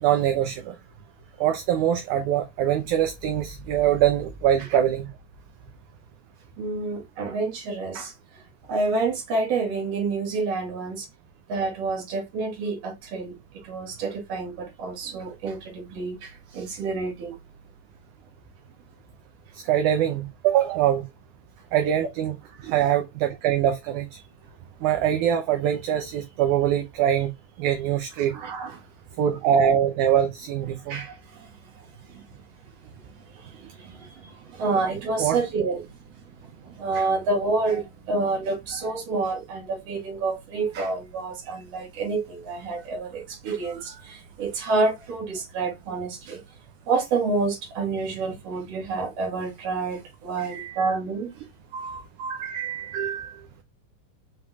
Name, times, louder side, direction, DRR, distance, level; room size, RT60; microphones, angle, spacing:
voice 1, 0.0-0.8 1.4-5.1 19.6-21.0 21.7-22.3 22.6-24.1 24.8-27.3 27.6-28.3 29.2-31.0 35.2-35.4 50.4-50.9 51.7-53.4, right 10 dB, 75° right, 2.1 m, -23 dB
voice 2, 6.6-8.1 8.7-11.1 11.5-13.3 13.6-17.4 22.6-22.8 28.2-28.8 30.9-31.1 32.1-32.2 33.6-35.9 36.6-46.4 46.9-51.5, right 3 dB, 55° right, 2.6 m, -28 dB
5.7 x 3.6 x 2.3 m
omnidirectional pair, 3.7 m